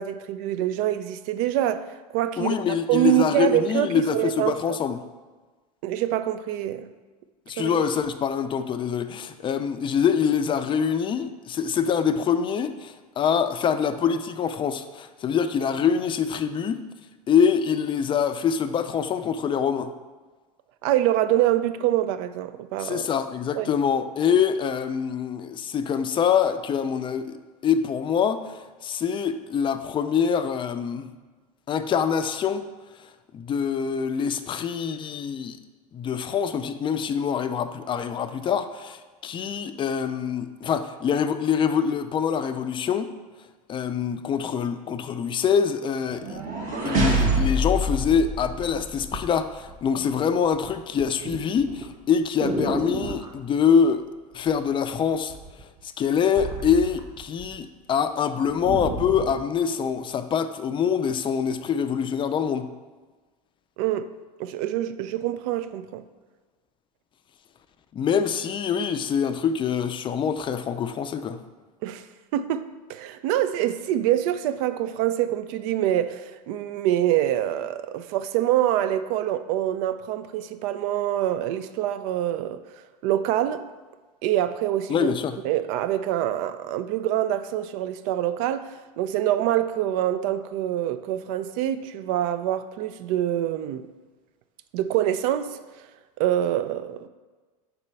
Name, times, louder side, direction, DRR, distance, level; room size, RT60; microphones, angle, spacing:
voice 1, 0.0-4.8 5.8-6.9 7.6-7.7 20.8-23.1 23.5-23.7 63.8-64.1 64.4-66.0 71.8-72.1 72.3-82.6 83.0-83.7 84.2-85.1 85.4-93.9 94.7-95.6 96.2-97.1, right 12 dB, 60° right, 0.4 m, -25 dB
voice 2, 2.4-5.0 7.5-16.8 17.3-19.9 22.8-31.1 31.7-32.7 33.0-35.6 35.9-43.1 43.7-46.4 46.9-54.1 54.3-62.7 67.9-71.4 84.9-85.4, left 7 dB, 25° left, 0.4 m, -25 dB
sound 1, 46.1-49.2, right 1 dB, 40° right, 1.5 m, -25 dB
sound 2, 47.8-48.5 49.1-49.3 49.7-50.2 50.5-53.3 54.5-55.0 55.3-57.6 57.9-58.0 58.3-59.4 60.1-60.2, right 2 dB, 20° right, 0.7 m, -33 dB
4.3 x 4.1 x 5.5 m
hypercardioid pair, 100°, 20 cm